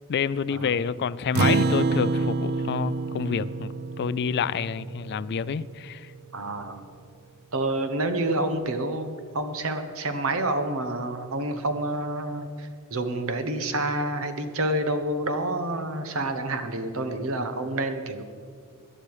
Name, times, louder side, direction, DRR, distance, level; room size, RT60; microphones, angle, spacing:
voice 1, 0.1-6.1, left 6 dB, 50° left, 0.4 m, -28 dB
Acoustic guitar, 1.4-6.0, right 3 dB, 45° right, 0.4 m, -27 dB
voice 2, 6.3-6.9 7.5-18.2, right 1 dB, 65° right, 1.3 m, -28 dB
18.0 x 11.0 x 4.9 m
head